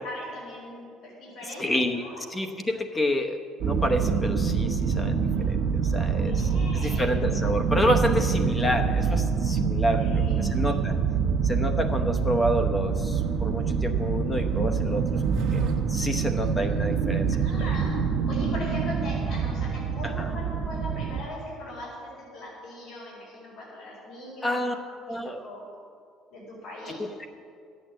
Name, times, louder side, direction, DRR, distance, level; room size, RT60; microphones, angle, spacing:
voice 1, 0.0-2.2 6.0-7.1 10.0-10.8 17.3-18.0 18.3-24.8 25.4-25.6 26.3-27.0, left 1 dB, 70° left, -7 dB, 4.4 m, -40 dB
voice 2, 1.6-2.0 2.3-11.0 11.4-17.3 20.0-20.3 24.4-24.7 25.1-25.5 26.9-27.3, equal, 15° left, 6 dB, 0.9 m, -29 dB
sound 1, 3.6-21.2, right 6 dB, 60° right, 1.2 m, -26 dB
13.0 x 8.6 x 7.6 m, 2.2 s
cardioid pair, 155°, 0 cm